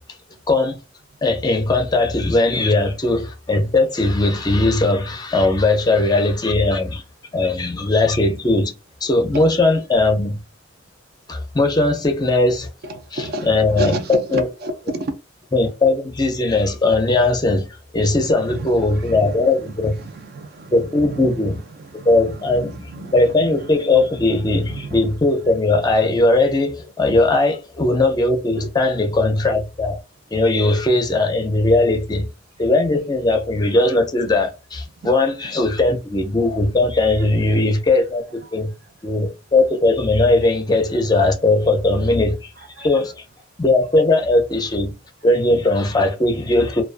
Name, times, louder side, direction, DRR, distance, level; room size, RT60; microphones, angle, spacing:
voice 1, 1.2-7.0 7.3-8.7 9.0-10.4 11.3-12.7 13.1-14.5 15.5-17.7 17.9-20.0 20.7-21.6 22.1-30.0 30.3-32.3 32.6-38.7 39.0-42.5 42.8-43.2 43.6-44.9 45.2-46.8, left 2 dB, 20° left, 0.4 m, -18 dB
voice 2, 12.9-15.2 18.4-19.4 20.0-21.4 21.9-23.8 24.2-25.2 28.6-28.7 42.8-42.9, right 1 dB, 55° right, 0.4 m, -32 dB
2.3 x 2.2 x 2.4 m
head